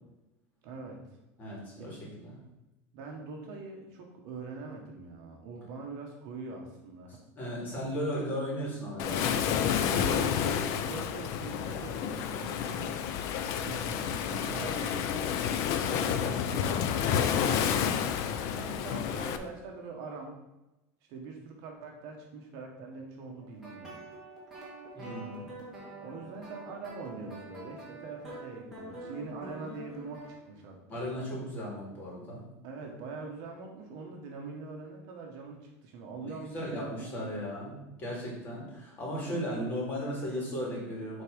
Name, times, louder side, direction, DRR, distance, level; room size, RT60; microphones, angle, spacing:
voice 1, 0.6-1.0 1.8-1.9 2.9-7.2 9.9-13.0 13.6-15.3 15.9-18.2 18.5-20.4 21.1-24.1 26.0-31.0 32.6-37.3, right 4 dB, 50° right, 1 dB, 1.3 m, -43 dB
voice 2, 1.4-2.4 7.4-9.3 24.9-25.5 30.9-32.4 36.2-41.2, equal, 25° left, -3 dB, 2.3 m, -36 dB
Waves surf, 9.0-19.4, left 8 dB, 45° left, 0.5 m, -30 dB
sound 1, 23.4-30.4, right 2 dB, ahead, 2.4 m, -46 dB
8.1 x 3.6 x 5.3 m, 0.99 s
cardioid pair, 175°, 7 cm